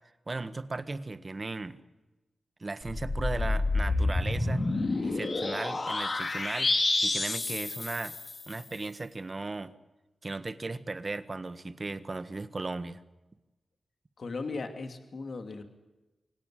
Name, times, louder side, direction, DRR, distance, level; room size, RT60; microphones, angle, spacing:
voice 1, 0.3-1.8 2.6-4.6 5.0-6.7 7.0-8.2 8.5-9.7 10.2-13.0, right 3 dB, 35° right, 12 dB, 1.5 m, -36 dB
sound 1, 2.8-8.6, left 2 dB, 45° left, 3.0 m, -29 dB
voice 2, 14.2-15.6, left 3 dB, 60° left, 7 dB, 2.9 m, -37 dB
25.0 x 17.5 x 10.0 m, 1.1 s
cardioid pair, 75°, 0 cm